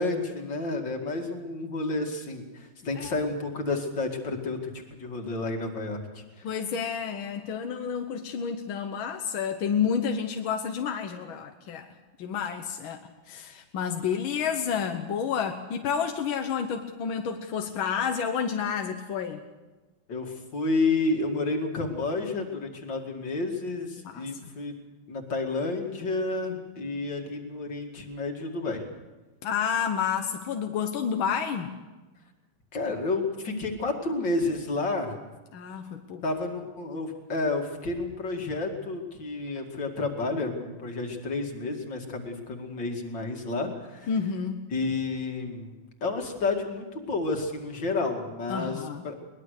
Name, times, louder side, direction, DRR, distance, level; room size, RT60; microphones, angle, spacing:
voice 1, 0.0-4.6 5.0-6.5 20.1-24.7 25.1-28.8 32.7-35.2 36.2-44.1 44.7-45.7 46.0-49.2, left 3 dB, 65° left, 2 dB, 3.1 m, -30 dB
voice 2, 6.4-11.9 12.2-13.0 13.3-19.4 24.1-24.2 29.4-31.7 35.5-36.2 44.1-44.6 48.5-49.0, left 7 dB, 85° left, 5 dB, 1.9 m, -30 dB
22.5 x 20.5 x 6.6 m, 1.2 s
omnidirectional pair, 2.2 m